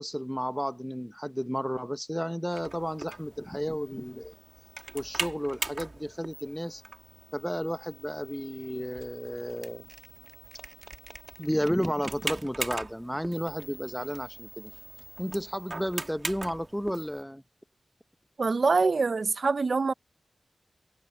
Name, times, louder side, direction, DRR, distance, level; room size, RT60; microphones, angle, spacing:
voice 1, 0.0-4.3 4.9-6.8 7.3-9.9 11.4-14.7 15.2-17.4, equal, ahead, 0.7 m, -32 dB
sound 1, 2.5-17.2, right 2 dB, 35° right, 2.1 m, -41 dB
voice 2, 18.4-19.9, right 4 dB, 55° right, 0.4 m, -24 dB
wide cardioid pair, 110°, 0 cm